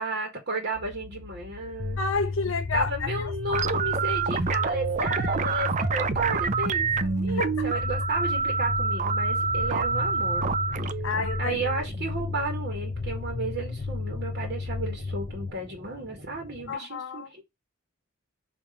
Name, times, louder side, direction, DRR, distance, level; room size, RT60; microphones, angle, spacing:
voice 1, 0.0-2.0 2.7-10.5 11.4-17.4, right 2 dB, 50° right, 1.7 m, -33 dB
sound 1, 0.7-16.7, left 1 dB, 70° right, 1.7 m, -46 dB
sound 2, 1.8-15.5, left 3 dB, 35° left, 0.3 m, -33 dB
voice 2, 2.0-3.7 7.3-7.7 11.0-11.6 16.7-17.3, left 3 dB, 65° left, 1.0 m, -30 dB
sound 3, 3.5-12.4, right 5 dB, 35° right, 0.4 m, -28 dB
5.8 x 3.1 x 5.1 m
head